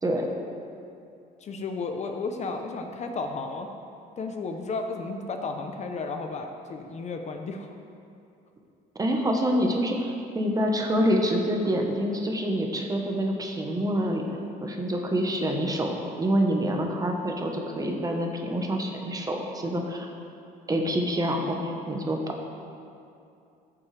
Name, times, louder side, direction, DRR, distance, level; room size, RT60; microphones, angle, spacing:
voice 1, 1.4-3.7 4.2-7.7, left 3 dB, 40° left, 4 dB, 0.7 m, -33 dB
voice 2, 9.0-14.2 14.6-20.1 20.7-22.4, equal, 20° right, 2 dB, 1.1 m, -26 dB
14.0 x 7.2 x 3.4 m, 2.6 s
cardioid pair, 110°, 17 cm